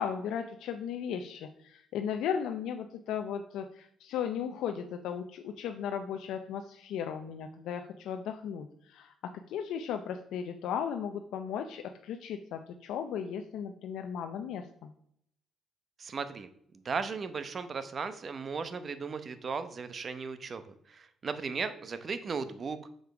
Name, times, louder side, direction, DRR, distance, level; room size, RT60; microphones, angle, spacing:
voice 1, 0.0-9.1 9.5-14.9, left 8 dB, 85° left, 6 dB, 0.5 m, -36 dB
voice 2, 16.0-16.5 16.8-20.6 20.9-22.8, right 5 dB, 45° right, 11 dB, 0.8 m, -36 dB
6.4 x 5.1 x 4.7 m, 0.67 s
cardioid pair, 90°, 0 cm